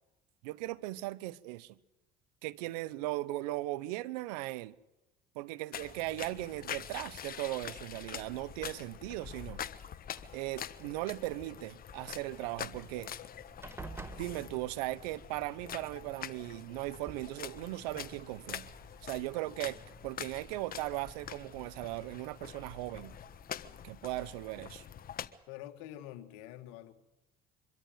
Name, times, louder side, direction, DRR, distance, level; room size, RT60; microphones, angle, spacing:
voice 1, 0.4-1.8 2.4-4.7 5.3-9.6 10.3-13.1 14.2-18.7 19.0-19.8 20.0-23.1 23.8-24.8, right 18 dB, 85° right, 1.0 m, -38 dB
sound 1, 5.7-25.3, left 9 dB, 45° left, 1.4 m, -45 dB
sound 2, 8.6-9.2 10.0-10.9 12.7-12.8 13.1-13.3 13.6-15.1 16.2-16.3 16.8-17.2, right 3 dB, 10° right, 1.8 m, -48 dB
sound 3, 12.0-23.2, equal, 15° left, 8.0 m, -57 dB
voice 2, 25.5-26.9, left 13 dB, 80° left, 2.0 m, -46 dB
24.5 x 13.5 x 9.3 m
supercardioid pair, 75°, 20 cm